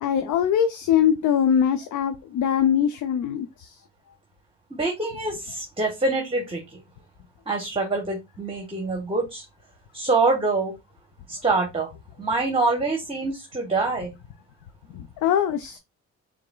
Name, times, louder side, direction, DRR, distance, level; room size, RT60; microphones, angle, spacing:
voice 1, 0.0-3.8 14.9-15.8, left 9 dB, 80° left, 0.6 m, -22 dB
voice 2, 4.7-6.8 7.5-9.4 9.9-10.7 11.3-11.9 12.2-14.1, right 3 dB, 20° right, 1.1 m, -25 dB
4.7 x 3.5 x 2.2 m
cardioid pair, 90°, 30 cm